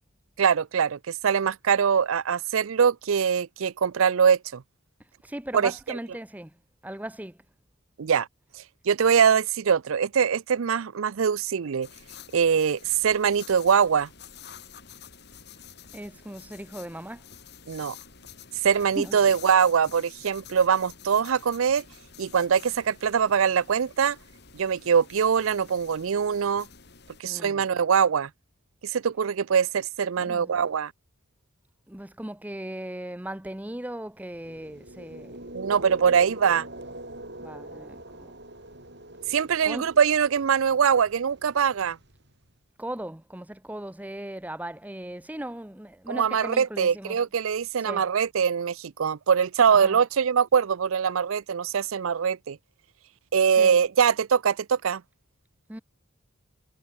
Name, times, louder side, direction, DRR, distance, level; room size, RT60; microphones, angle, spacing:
voice 1, 0.4-4.6 5.5-5.7 8.0-8.3 8.9-11.9 12.3-14.1 17.7-17.9 18.6-21.8 22.2-24.2 24.5-26.7 27.2-28.3 28.8-30.9 35.5-36.7 39.3-42.0 46.1-52.6 53.3-55.0, right 7 dB, 70° right, 0.5 m, -23 dB
voice 2, 5.2-6.5 6.8-7.4 15.9-17.2 18.9-19.2 27.2-27.6 30.2-30.7 31.9-35.4 37.4-38.3 39.6-39.9 42.8-47.2 47.8-48.0 49.7-50.0 53.6-53.8 55.7-55.8, right 1 dB, 5° right, 0.7 m, -38 dB
sound 1, 11.8-27.2, left 7 dB, 50° left, 3.4 m, -49 dB
sound 2, 34.3-42.4, right 1 dB, 50° right, 7.8 m, -43 dB
head